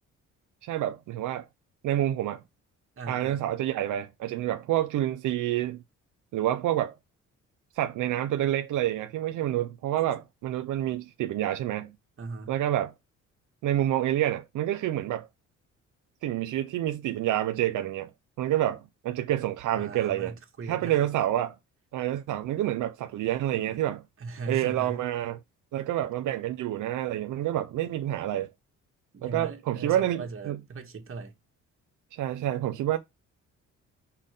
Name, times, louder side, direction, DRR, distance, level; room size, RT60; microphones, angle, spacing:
voice 1, 0.6-1.5 1.8-2.4 3.1-5.8 6.3-6.9 7.8-11.9 12.5-12.9 13.6-15.3 16.2-18.1 18.4-20.3 20.7-21.5 21.9-24.0 24.5-25.4 25.7-28.5 29.2-30.6 32.1-33.0, right 12 dB, 85° right, 1.0 m, -28 dB
voice 2, 3.0-3.5 12.2-12.5 19.8-21.1 24.2-25.0 29.1-31.3, right 4 dB, 45° right, 2.3 m, -39 dB
6.4 x 6.0 x 3.9 m
cardioid pair, 90°, 30 cm